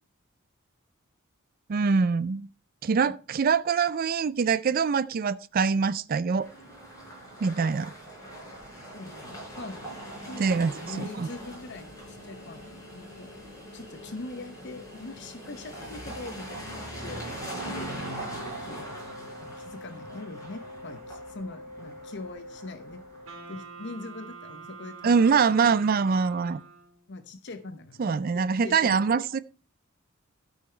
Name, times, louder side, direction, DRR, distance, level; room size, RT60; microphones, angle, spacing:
voice 1, 1.7-2.5 2.8-6.5 7.4-7.9 10.4-11.3 25.0-26.6 28.0-29.4, right 5 dB, 45° right, 0.4 m, -24 dB
sound 1, 6.4-23.4, right 1 dB, 15° left, 5.0 m, -41 dB
voice 2, 8.9-9.9 10.3-13.3 13.7-18.9 19.4-23.0 23.5-25.5 27.1-29.2, left 2 dB, 55° left, 0.8 m, -42 dB
Wind instrument woodwind instrument, 16.8-23.8, left 1 dB, 75° left, 2.1 m, -47 dB
Wind instrument woodwind instrument 2, 23.3-27.1, right 6 dB, 85° right, 3.7 m, -45 dB
13.0 x 5.7 x 4.4 m
head